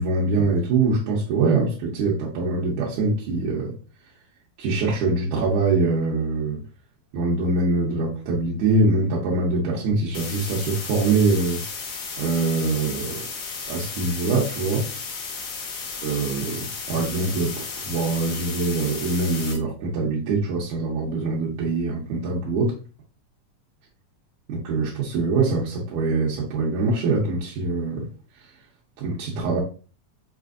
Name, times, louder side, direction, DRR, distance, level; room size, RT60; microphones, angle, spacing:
voice 1, 0.0-3.7 4.6-6.6 7.1-11.6 12.2-13.2 13.7-14.9 16.0-22.7 24.5-28.1 29.0-29.6, right 3 dB, 85° right, -5 dB, 2.2 m, -23 dB
sound 1, 10.1-19.6, left 5 dB, 65° left, 1.5 m, -34 dB
5.9 x 2.5 x 2.4 m, 0.36 s
omnidirectional pair, 3.4 m